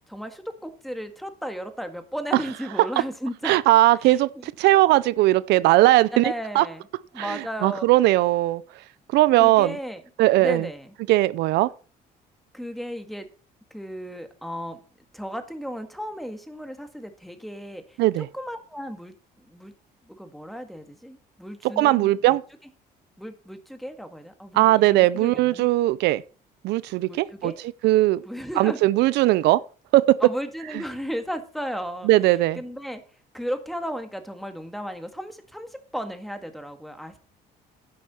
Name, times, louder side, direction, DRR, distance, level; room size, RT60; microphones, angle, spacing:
voice 1, 0.1-3.6 4.0-4.5 6.1-6.9 7.1-7.9 9.4-10.0 10.4-10.9 12.5-13.3 13.7-14.8 15.1-17.8 18.2-19.1 19.5-19.7 20.1-22.4 23.2-25.7 27.0-27.6 28.3-28.8 30.2-32.1 32.5-33.0 33.3-37.2, equal, ahead, 1.8 m, -34 dB
voice 2, 3.4-6.6 7.2-8.6 9.1-9.8 10.2-10.6 11.1-11.7 18.0-18.3 21.8-22.4 24.5-26.2 26.6-27.5 27.8-28.2 28.6-29.6 29.9-30.2 32.0-32.6, right 17 dB, 80° right, 0.5 m, -19 dB
11.5 x 9.5 x 4.3 m
cardioid pair, 110°, 17 cm